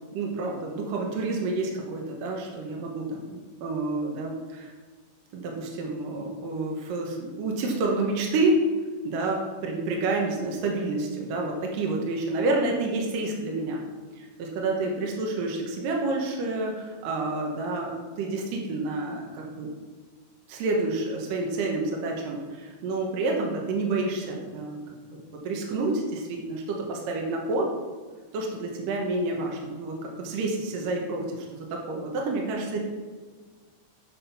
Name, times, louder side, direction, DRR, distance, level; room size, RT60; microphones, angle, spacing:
voice 1, 0.1-4.7 5.3-8.6 9.0-13.8 14.2-19.7 20.5-24.8 25.1-27.7 28.3-32.8, right 2 dB, 70° right, 0 dB, 2.6 m, -29 dB
8.4 x 5.6 x 5.8 m, 1.5 s
omnidirectional pair, 4.5 m